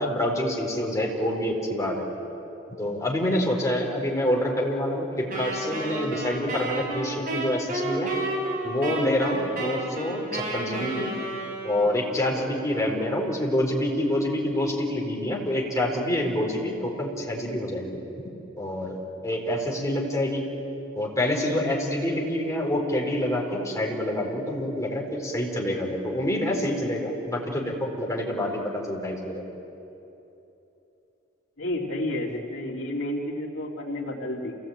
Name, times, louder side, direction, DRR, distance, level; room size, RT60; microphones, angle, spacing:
voice 1, 0.0-2.1 2.8-8.1 8.6-11.1 11.6-18.0 18.6-19.0 19.2-20.5 20.9-29.4, left 1 dB, 15° left, -1 dB, 4.3 m, -27 dB
Wind instrument woodwind instrument, 5.3-12.1, right 2 dB, 50° right, 7.3 m, -31 dB
voice 2, 31.6-34.5, left 1 dB, 90° left, -1 dB, 2.8 m, -30 dB
28.0 x 18.0 x 8.9 m, 3.0 s
head